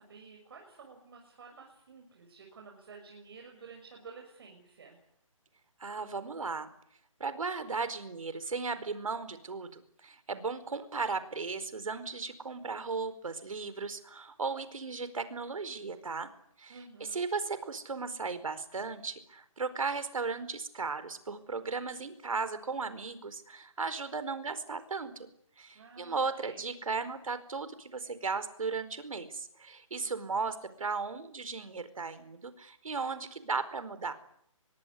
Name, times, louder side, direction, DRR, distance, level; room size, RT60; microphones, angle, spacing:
voice 1, 0.0-5.0 16.7-17.2 25.7-26.7, right 4 dB, 45° right, 2 dB, 6.6 m, -52 dB
voice 2, 5.8-6.7 7.2-16.3 16.6-25.3 25.6-34.1, right 4 dB, 75° right, 13 dB, 4.7 m, -36 dB
24.5 x 22.5 x 9.8 m, 0.70 s
hypercardioid pair, 170°, 18 cm